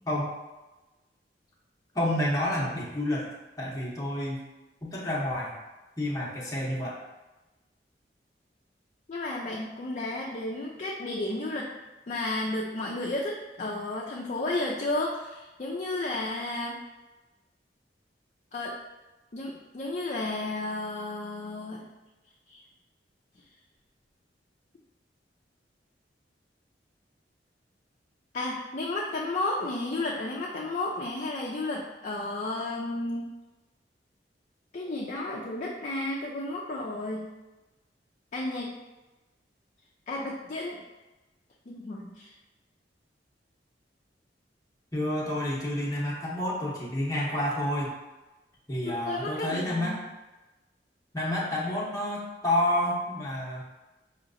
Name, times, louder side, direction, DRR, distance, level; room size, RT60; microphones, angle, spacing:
voice 1, 1.9-3.3 3.6-4.4 4.8-5.5 6.0-7.0 44.9-47.9 48.7-50.0 51.1-53.6, left 1 dB, 20° left, -5 dB, 0.8 m, -29 dB
voice 2, 9.1-11.7 12.1-16.8 18.5-18.7 19.3-21.8 22.5-22.6 28.3-33.2 34.7-37.3 38.3-38.7 40.1-40.8 41.7-42.3 48.8-50.0, left 2 dB, 45° left, -3 dB, 0.4 m, -32 dB
4.8 x 2.8 x 2.6 m, 1.1 s
head